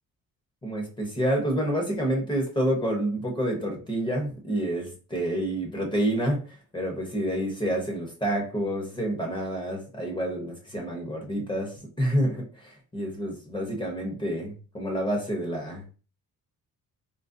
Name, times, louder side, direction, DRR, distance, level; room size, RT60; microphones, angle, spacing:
voice 1, 0.6-15.9, right 1 dB, 15° left, 0 dB, 0.7 m, -28 dB
3.8 x 2.0 x 2.5 m, 0.36 s
cardioid pair, 165°, 36 cm